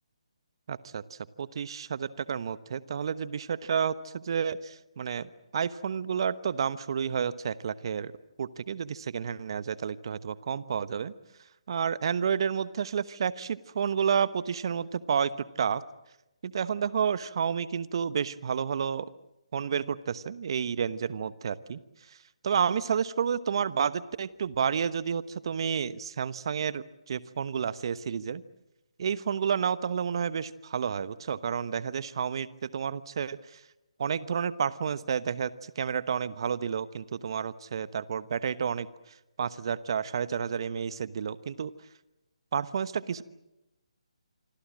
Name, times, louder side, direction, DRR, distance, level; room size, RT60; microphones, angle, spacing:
voice 1, 0.7-1.0 1.4-8.1 8.4-11.1 11.7-15.8 16.4-19.1 19.5-21.8 22.4-28.4 29.0-33.6 34.0-38.9 39.4-41.7 42.5-43.2, right 7 dB, 45° right, 16 dB, 1.1 m, -30 dB
27.0 x 25.0 x 7.5 m, 0.93 s
figure-of-eight pair, 150°, 3 cm